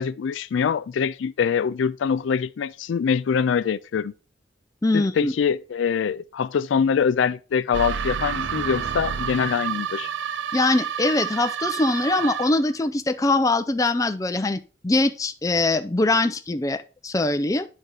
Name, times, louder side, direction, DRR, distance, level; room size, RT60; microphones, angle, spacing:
voice 1, 0.0-4.1 4.9-10.1, left 6 dB, 80° left, 0.4 m, -24 dB
voice 2, 4.8-5.3 10.5-17.7, left 2 dB, 15° left, 0.4 m, -22 dB
sound 1, 7.7-12.7, right 7 dB, 75° right, 0.5 m, -29 dB
10.0 x 4.1 x 4.7 m
head